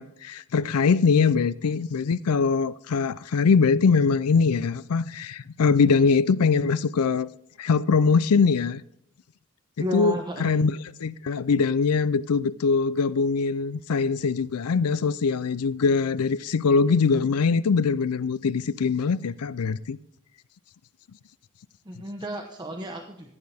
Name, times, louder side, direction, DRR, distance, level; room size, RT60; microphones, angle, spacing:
voice 1, 0.0-7.3 7.6-8.8 9.9-10.1 10.4-10.7 11.0-20.0, left 5 dB, 80° left, 0.5 m, -22 dB
voice 2, 9.8-10.5 21.8-23.3, right 1 dB, 20° right, 1.0 m, -32 dB
14.5 x 9.6 x 3.5 m
head